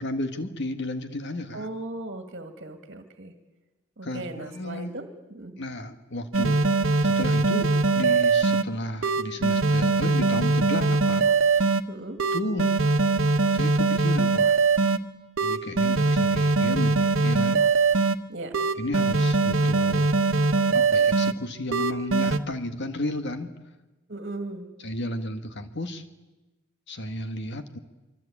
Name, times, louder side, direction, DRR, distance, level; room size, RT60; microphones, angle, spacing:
voice 1, 0.0-1.7 4.0-4.9 5.6-6.6 7.0-11.7 12.3-12.7 13.5-14.6 15.4-17.6 18.8-20.1 20.7-23.5 24.8-26.0 26.9-27.8, left 1 dB, 60° left, 8 dB, 1.7 m, -33 dB
voice 2, 1.5-3.3 4.0-5.6 11.9-12.2 18.3-18.6 24.1-24.7, right 2 dB, 55° right, 7 dB, 2.2 m, -37 dB
sound 1, 6.3-8.6 9.0-11.8 12.2-15.0 15.4-18.2 18.5-21.3 21.7-22.4, right 3 dB, 70° right, 1.3 m, -22 dB
25.0 x 24.5 x 8.6 m, 1.1 s
head